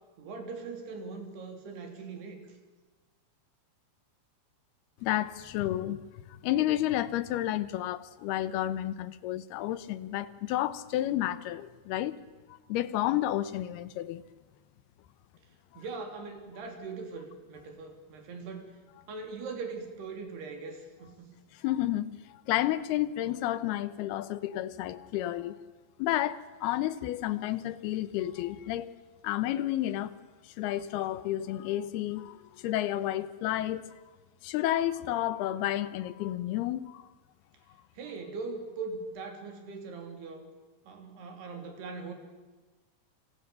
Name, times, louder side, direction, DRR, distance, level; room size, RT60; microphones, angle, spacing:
voice 1, 0.2-2.4 15.8-18.7 19.1-21.3 38.0-40.5 40.9-42.1, right 4 dB, 90° right, 5.3 m, -40 dB
voice 2, 5.0-6.0 6.3-12.2 12.7-14.2 15.7-15.8 21.6-25.5 26.0-28.9 29.2-30.1 30.6-33.8 34.4-37.0, left 13 dB, 85° left, 2.9 m, -31 dB
29.5 x 25.5 x 7.0 m
omnidirectional pair, 4.5 m